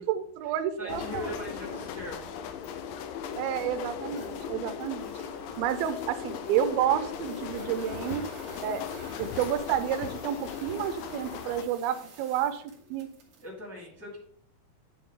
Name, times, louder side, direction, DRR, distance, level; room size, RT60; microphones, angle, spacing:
voice 1, 0.0-1.3 3.4-5.1 5.6-8.3 8.6-8.8 9.2-12.6 12.9-13.1, right 10 dB, 85° right, 10 dB, 2.4 m, -30 dB
voice 2, 0.8-2.3 13.4-14.2, left 1 dB, 25° left, -5 dB, 0.3 m, -40 dB
sound 1, 0.9-11.6, left 8 dB, 80° left, 2.2 m, -38 dB
sound 2, 1.4-2.7 3.2-13.5, right 3 dB, 55° right, 1.6 m, -52 dB
9.5 x 3.6 x 4.7 m, 0.63 s
omnidirectional pair, 4.4 m